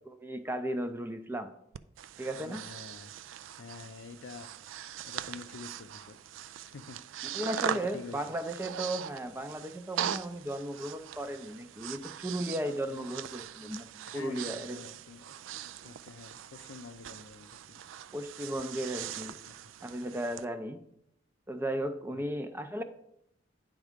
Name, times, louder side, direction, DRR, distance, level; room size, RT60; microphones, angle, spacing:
voice 1, 0.1-1.5 2.2-2.6 7.3-13.9 14.1-14.8 18.1-19.4 19.8-20.8 21.5-22.8, right 1 dB, 10° right, 8 dB, 0.5 m, -35 dB
Breathing, 1.7-20.4, right 10 dB, 85° right, 0.3 m, -41 dB
voice 2, 2.3-3.1 3.6-4.5 5.0-6.2 6.6-7.0 7.7-8.3 12.9-13.1 14.1-15.2 15.8-17.8 19.5-19.6 19.9-20.0 22.1-22.3, left 4 dB, 75° left, 11 dB, 0.5 m, -47 dB
9.5 x 3.6 x 5.1 m, 0.76 s
head